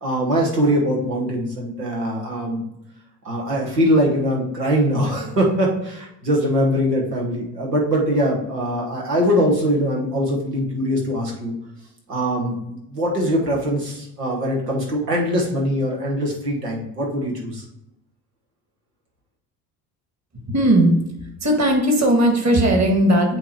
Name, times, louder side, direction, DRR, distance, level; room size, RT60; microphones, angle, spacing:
voice 1, 0.0-2.6 3.2-11.5 12.1-17.6, equal, 90° right, -2 dB, 1.3 m, -22 dB
voice 2, 20.3-20.9 21.4-23.4, right 1 dB, 35° right, 3 dB, 1.7 m, -17 dB
8.1 x 2.9 x 4.4 m, 0.80 s
figure-of-eight pair, 50°, 46 cm